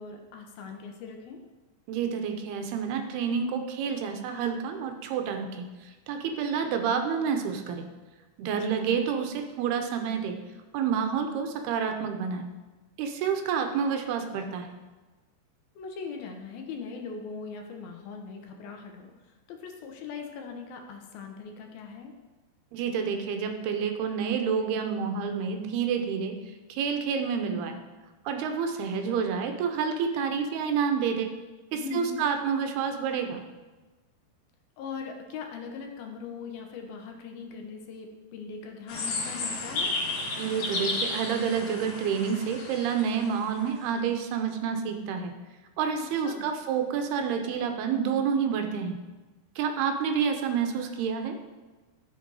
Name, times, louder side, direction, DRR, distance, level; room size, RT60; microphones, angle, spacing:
voice 1, 0.0-1.4 8.5-8.8 15.8-19.1 19.5-22.1 31.7-32.2 34.8-39.9 46.0-46.5, left 5 dB, 75° left, 3 dB, 2.6 m, -40 dB
voice 2, 1.9-5.7 6.1-7.9 8.4-10.4 10.7-12.5 13.0-14.7 22.7-26.3 26.7-27.8 28.3-31.3 31.7-33.4 40.4-45.3 45.8-49.0 49.6-51.4, right 6 dB, 80° right, 5 dB, 2.8 m, -29 dB
sound 1, 38.9-43.4, left 3 dB, 55° left, 3.7 m, -33 dB
13.0 x 6.8 x 4.8 m, 1.2 s
omnidirectional pair, 4.7 m